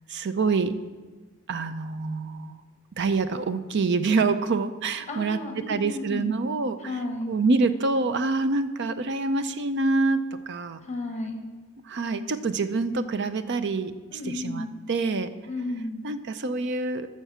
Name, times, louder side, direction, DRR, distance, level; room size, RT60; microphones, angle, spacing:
voice 1, 0.1-0.7 1.5-2.6 3.0-7.0 7.3-10.2 10.5-10.8 11.9-15.3 16.0-17.1, right 3 dB, 55° right, 11 dB, 0.5 m, -26 dB
voice 2, 5.1-6.3 6.8-7.3 10.9-11.4 14.1-14.7 15.5-16.0, left 2 dB, 35° left, 4 dB, 1.0 m, -33 dB
13.0 x 4.5 x 7.2 m, 1.3 s
head